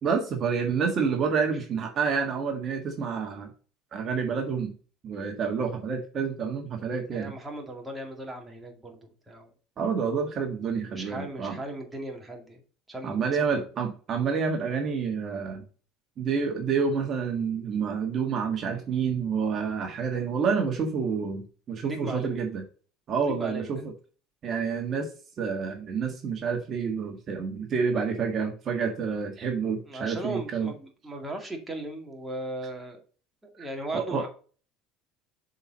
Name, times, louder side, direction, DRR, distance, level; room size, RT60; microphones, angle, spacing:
voice 1, 0.0-3.5 3.9-4.7 5.0-7.3 9.8-11.6 13.0-15.6 16.2-22.6 23.1-23.9 24.4-25.1 25.4-30.7 33.9-34.2, right 6 dB, 40° right, 3 dB, 1.5 m, -28 dB
voice 2, 7.1-9.5 10.9-12.6 12.9-13.6 21.8-22.5 23.2-23.7 29.9-33.0 33.6-34.3, right 1 dB, 10° right, 2 dB, 2.2 m, -37 dB
6.9 x 4.3 x 4.0 m, 0.39 s
supercardioid pair, 100°, 0 cm